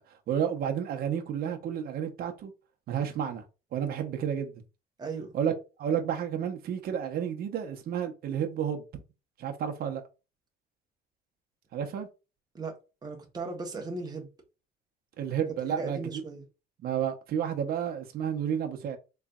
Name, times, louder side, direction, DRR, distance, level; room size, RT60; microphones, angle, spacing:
voice 1, 0.3-2.5 2.9-3.4 3.7-4.6 5.3-5.5 5.8-9.0 9.4-10.0 11.7-12.1 15.2-16.0 16.8-19.0, right 8 dB, 60° right, 0.9 m, -31 dB
voice 2, 5.0-5.3 12.5-12.8 13.0-14.3 15.8-16.4, right 3 dB, 25° right, 1.1 m, -37 dB
4.0 x 3.2 x 2.4 m
cardioid pair, 110°, 17 cm